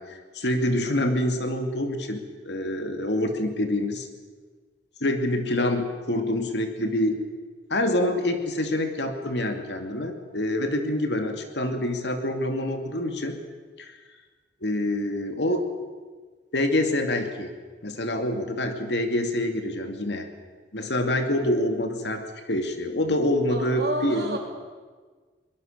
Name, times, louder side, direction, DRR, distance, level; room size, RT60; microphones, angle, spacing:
voice 1, 0.0-4.1 5.0-7.2 7.7-13.4 13.8-13.9 14.6-15.6 16.5-17.5 17.8-20.3 20.7-24.4, left 1 dB, 75° left, 5 dB, 2.5 m, -26 dB
voice 2, 23.5-24.4, right 1 dB, 60° right, 2 dB, 3.8 m, -30 dB
22.5 x 20.0 x 6.7 m, 1.4 s
head